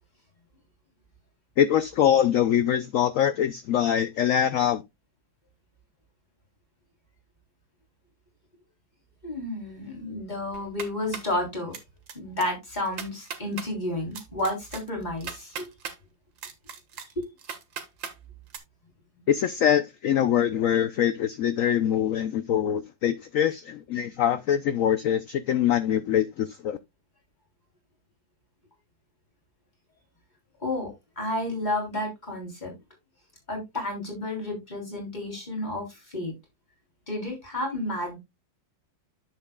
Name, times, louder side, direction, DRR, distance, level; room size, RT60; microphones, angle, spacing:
voice 1, 1.6-4.8 19.3-26.8, left 9 dB, 90° left, 0.7 m, -24 dB
voice 2, 9.2-11.8 12.1-15.7 17.2-17.3 19.1-19.2 30.6-30.9 31.2-32.7 33.5-36.3 37.1-38.2, left 1 dB, 25° left, 3.6 m, -31 dB
sound 1, 10.5-11.3 11.7-12.1 12.4-12.5 12.8-13.7 14.1-16.0 16.4-18.1 18.5-18.6, right 6 dB, 90° right, 2.1 m, -38 dB
10.0 x 7.4 x 2.3 m
omnidirectional pair, 2.0 m